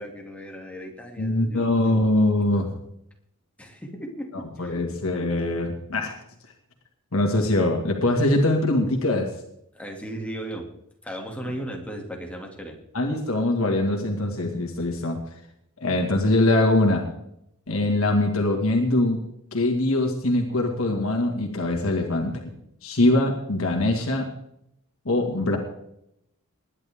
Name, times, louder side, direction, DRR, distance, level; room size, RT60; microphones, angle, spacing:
voice 1, 0.0-1.7 3.6-4.9 9.7-10.6 11.0-12.8, equal, 5° left, 1 dB, 2.5 m, -36 dB
voice 2, 1.2-2.7 4.6-6.1 7.1-9.3 12.9-15.2 15.8-17.1 17.7-19.2 19.5-22.5 22.8-24.3 25.1-25.6, left 1 dB, 70° left, 2 dB, 2.2 m, -22 dB
20.0 x 11.0 x 3.7 m, 0.76 s
head